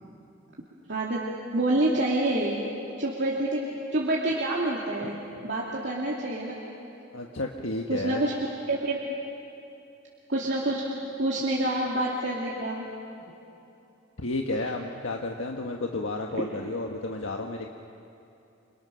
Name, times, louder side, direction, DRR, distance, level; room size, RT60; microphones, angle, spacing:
voice 1, 0.9-2.6 3.0-3.6 3.9-5.2 5.4-6.6 7.9-8.3 8.7-9.0 10.3-10.8 11.2-12.9, right 1 dB, 60° right, -5 dB, 2.8 m, -27 dB
voice 2, 7.1-8.2 14.2-17.7, left 2 dB, 90° left, 1 dB, 1.5 m, -32 dB
29.5 x 26.0 x 6.4 m, 2.8 s
head